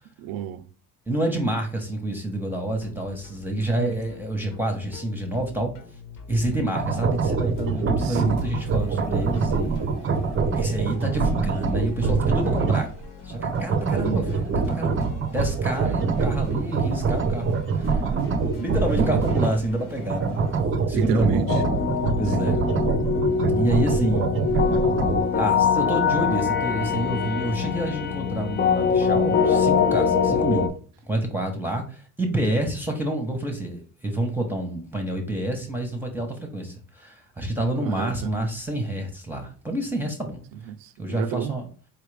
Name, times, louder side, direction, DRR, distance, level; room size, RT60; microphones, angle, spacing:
voice 1, 0.2-0.7 3.8-3.9 6.5-6.6 8.0-8.4 15.8-16.0 16.3-16.5 18.1-18.7 20.9-21.5 22.4-22.6 37.8-38.3 40.7-41.6, right 11 dB, 80° right, 0.5 m, -32 dB
voice 2, 1.1-5.7 6.3-9.9 10.6-12.9 13.2-17.8 18.5-20.4 20.9-21.6 22.2-22.6 23.5-24.3 25.3-30.7 31.0-40.4 41.0-41.7, right 1 dB, 5° right, 1.0 m, -28 dB
sound 1, 2.7-20.6, left 6 dB, 65° left, 1.2 m, -42 dB
sound 2, 6.7-13.0 13.3-19.6 20.0-25.4, right 4 dB, 35° right, 0.6 m, -25 dB
sound 3, 21.5-30.7, left 6 dB, 30° left, 0.5 m, -23 dB
4.4 x 3.3 x 3.3 m
cardioid pair, 105°, 35 cm